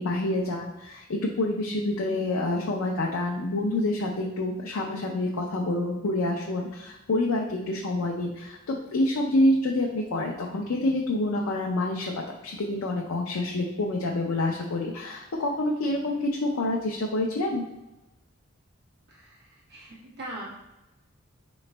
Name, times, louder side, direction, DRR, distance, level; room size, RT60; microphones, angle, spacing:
voice 1, 0.0-17.6, left 1 dB, 85° left, -1 dB, 0.5 m, -27 dB
voice 2, 19.1-20.4, right 1 dB, 50° right, -6 dB, 1.3 m, -41 dB
4.9 x 3.1 x 3.3 m, 1.0 s
head